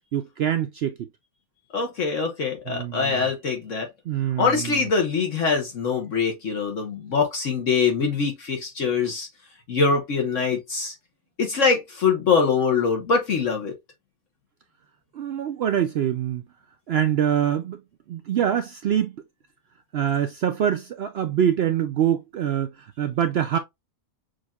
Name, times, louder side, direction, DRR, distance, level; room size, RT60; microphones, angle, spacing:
voice 1, 0.1-1.1 2.7-3.3 4.1-4.9 15.1-16.4 16.9-17.8 18.1-19.2 19.9-23.6, right 9 dB, 70° right, 0.6 m, -24 dB
voice 2, 1.7-3.9 4.4-9.3 9.7-10.9 11.4-13.7, left 5 dB, 60° left, 1.3 m, -23 dB
6.3 x 2.7 x 2.3 m
omnidirectional pair, 1.5 m